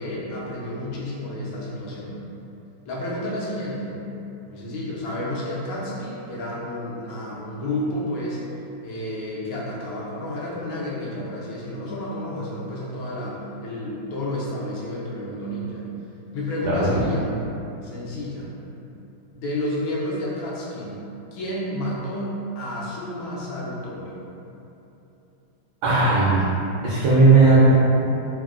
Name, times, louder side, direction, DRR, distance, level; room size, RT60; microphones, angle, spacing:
voice 1, 0.0-2.2 2.9-4.0 4.5-8.5 8.8-15.9 16.3-17.3 17.8-18.5 19.3-21.0 21.3-24.2, left 1 dB, 85° left, -5 dB, 1.4 m, -31 dB
voice 2, 25.8-26.5 26.8-27.7, right 3 dB, 70° right, -9 dB, 1.0 m, -16 dB
3.5 x 2.1 x 2.3 m, 2.9 s
omnidirectional pair, 2.2 m